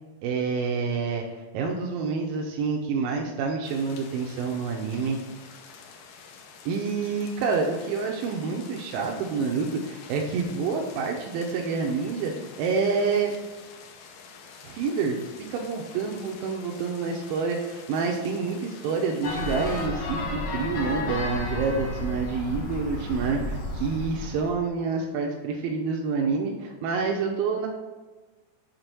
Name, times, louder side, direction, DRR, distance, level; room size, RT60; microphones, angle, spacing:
voice 1, 0.2-1.2 1.5-5.2 6.7-12.3 12.6-13.4 14.6-27.7, right 5 dB, 90° right, 0 dB, 2.5 m, -28 dB
sound 1, 3.6-19.9, left 5 dB, 75° left, 2.3 m, -47 dB
sound 2, 19.2-24.5, left 2 dB, 60° left, 2.1 m, -32 dB
6.6 x 4.1 x 5.9 m, 1.3 s
omnidirectional pair, 4.0 m